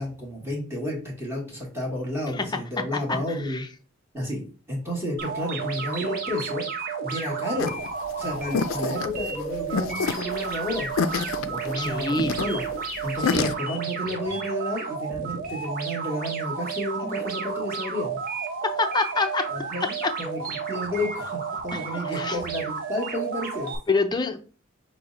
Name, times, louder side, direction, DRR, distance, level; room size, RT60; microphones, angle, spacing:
voice 1, 0.0-3.6 4.1-4.4 4.7-6.6 7.0-7.8 8.2-10.9 11.5-12.7 13.0-18.2 19.5-20.4 20.7-23.7, left 1 dB, 15° right, -3 dB, 1.3 m, -31 dB
voice 2, 2.9-3.7 11.7-12.4 13.2-13.5 18.8-19.4 20.0-20.1 21.7-22.4 23.9-24.4, left 3 dB, 20° left, 7 dB, 0.5 m, -27 dB
sound 1, 5.2-23.8, right 5 dB, 45° right, 0.9 m, -32 dB
sound 2, 7.6-13.5, left 5 dB, 85° left, 0.4 m, -28 dB
5.7 x 2.1 x 3.8 m, 0.37 s
head